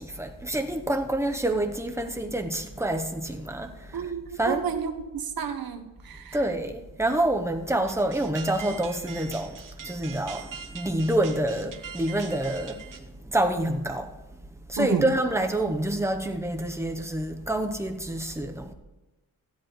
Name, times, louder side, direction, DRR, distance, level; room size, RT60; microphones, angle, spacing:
voice 1, 0.0-4.1 4.4-4.7 6.3-14.1 14.7-18.7, right 1 dB, 10° right, 0.9 m, -27 dB
voice 2, 3.9-6.4 14.8-15.1, right 6 dB, 85° right, 1.2 m, -30 dB
sound 1, 7.9-13.0, right 7 dB, 60° right, 1.0 m, -43 dB
15.5 x 10.5 x 3.2 m
wide cardioid pair, 145°, 35 cm